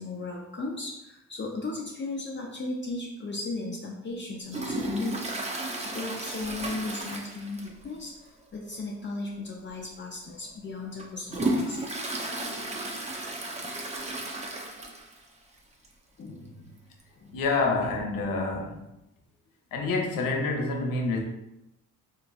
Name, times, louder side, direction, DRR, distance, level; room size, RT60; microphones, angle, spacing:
voice 1, 0.0-11.8 16.2-16.8 17.2-17.4, left 2 dB, 35° left, -2 dB, 0.6 m, -36 dB
Toilet flush, 4.5-7.9 8.2-8.3 8.7-8.8 9.7-9.8 10.3-15.3 15.6-15.7 15.8-15.9 17.0-17.1, right 1 dB, 20° right, 0.5 m, -33 dB
voice 2, 17.3-18.8 19.7-21.2, left 3 dB, 75° left, 1 dB, 0.8 m, -27 dB
3.7 x 2.5 x 2.3 m, 0.89 s
supercardioid pair, 65°, 34 cm